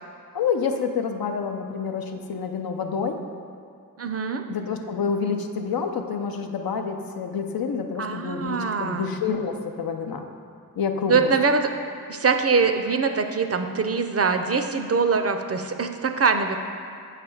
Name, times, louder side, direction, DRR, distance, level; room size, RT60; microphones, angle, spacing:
voice 1, 0.3-3.2 4.5-10.3 10.8-11.3, left 6 dB, 85° left, 5 dB, 0.6 m, -28 dB
voice 2, 4.0-4.4 8.0-9.1 11.1-11.7 12.1-16.6, right 5 dB, 45° right, 6 dB, 0.5 m, -23 dB
7.7 x 3.3 x 6.2 m, 2.4 s
wide cardioid pair, 70°, 35 cm